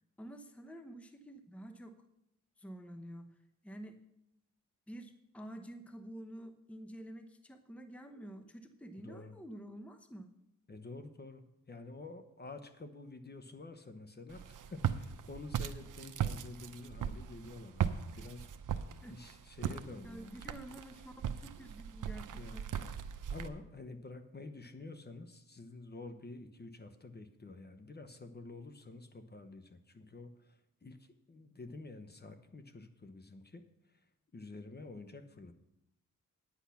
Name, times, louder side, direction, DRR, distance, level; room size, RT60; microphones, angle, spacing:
voice 1, 0.2-2.0 2.6-3.4 3.6-4.0 4.9-10.3 19.0-19.2 20.0-22.7, right 1 dB, 5° left, 8 dB, 0.8 m, -49 dB
voice 2, 8.9-9.4 10.7-20.6 22.3-23.0 23.3-35.5, left 3 dB, 30° left, 9 dB, 0.9 m, -49 dB
Walk footsteps, 14.3-23.5, right 9 dB, 75° right, 0.7 m, -38 dB
9.8 x 8.4 x 5.7 m, 0.84 s
cardioid pair, 80°, 32 cm